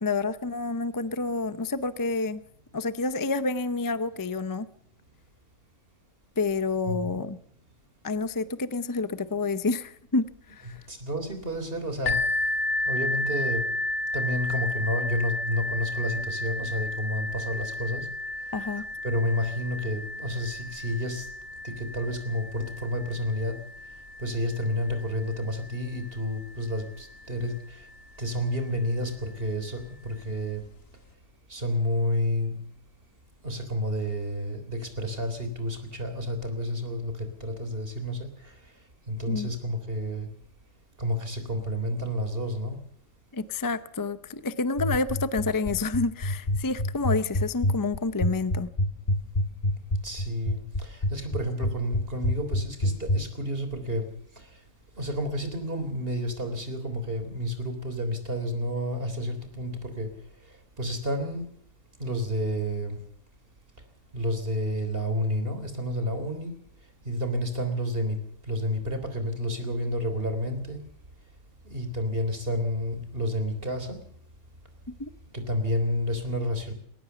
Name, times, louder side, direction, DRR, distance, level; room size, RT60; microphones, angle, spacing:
voice 1, 0.0-2.4 2.7-4.7 6.4-7.4 8.0-10.8 18.5-18.9 39.3-39.5 43.3-48.7 75.0-75.1, left 3 dB, 20° left, 13 dB, 0.6 m, -29 dB
voice 2, 10.7-12.5 12.8-13.6 14.1-18.1 18.3-21.3 21.6-23.6 23.8-27.9 28.2-30.6 31.5-32.6 33.4-40.3 41.0-42.8 50.0-54.7 55.0-61.5 62.0-63.0 64.1-66.5 66.8-70.8 71.6-74.0 75.3-76.7, left 1 dB, 45° right, 7 dB, 3.9 m, -30 dB
sound 1, 12.1-27.6 28.4-28.5 29.0-29.1, left 2 dB, 80° left, 2.2 m, -33 dB
sound 2, 44.8-53.2, left 1 dB, 35° left, 1.5 m, -25 dB
21.0 x 18.0 x 7.0 m, 0.63 s
omnidirectional pair, 1.4 m